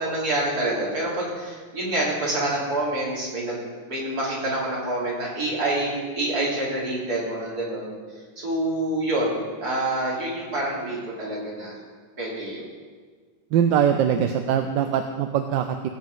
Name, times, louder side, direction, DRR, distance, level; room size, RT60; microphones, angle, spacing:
voice 1, 0.0-3.6 3.9-7.9 8.4-11.8 12.2-12.6, right 1 dB, 50° right, -5 dB, 3.8 m, -27 dB
voice 2, 13.5-15.9, right 8 dB, 75° right, 7 dB, 1.3 m, -22 dB
17.5 x 7.7 x 5.5 m, 1.6 s
omnidirectional pair, 2.2 m